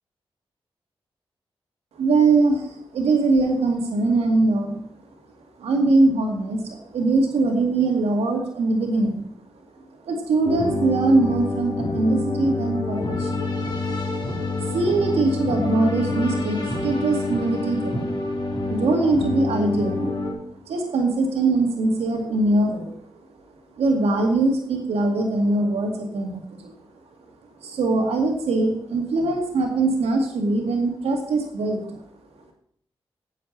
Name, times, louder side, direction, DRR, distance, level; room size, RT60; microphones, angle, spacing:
voice 1, 1.9-4.8 5.6-9.3 9.7-13.5 14.6-18.1 18.6-20.1 20.7-23.0 23.7-27.0 27.6-32.0, right 3 dB, 90° right, 3 dB, 2.2 m, -22 dB
sound 1, 10.4-20.3, left 2 dB, 45° left, 3.7 m, -27 dB
9.2 x 7.2 x 7.2 m, 0.64 s
supercardioid pair, 40°, 10 cm